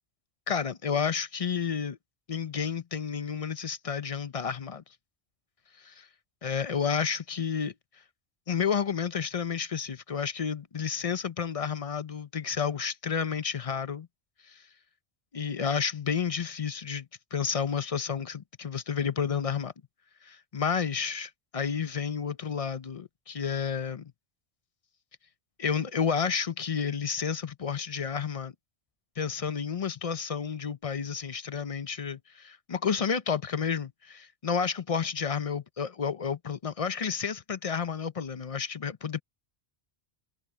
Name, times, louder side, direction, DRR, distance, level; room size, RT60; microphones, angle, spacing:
voice 1, 0.5-2.0 2.3-4.8 6.4-7.7 8.5-14.1 14.5-14.6 15.3-17.1 17.3-19.7 20.2-24.1 25.6-28.5 29.2-39.2, left 6 dB, 40° left, 0.6 m, -31 dB
omnidirectional pair, 1.1 m